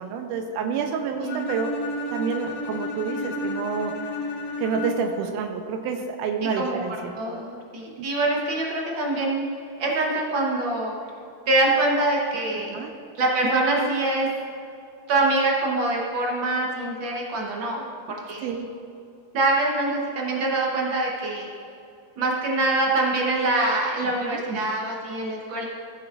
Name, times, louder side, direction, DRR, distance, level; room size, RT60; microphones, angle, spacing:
voice 1, 0.0-1.8 2.1-4.0 4.6-7.2 8.0-8.1 12.7-12.9 18.4-18.7 24.0-24.4, right 5 dB, 85° right, 5 dB, 2.2 m, -29 dB
Bowed string instrument, 1.3-5.3, left 1 dB, 60° left, 1.7 m, -31 dB
voice 2, 7.1-9.5 9.8-10.9 11.5-12.7 13.2-14.3 15.1-18.4 19.3-21.5 22.2-25.7, right 2 dB, 60° right, -2 dB, 1.2 m, -24 dB
15.5 x 8.9 x 2.5 m, 2.6 s
omnidirectional pair, 3.6 m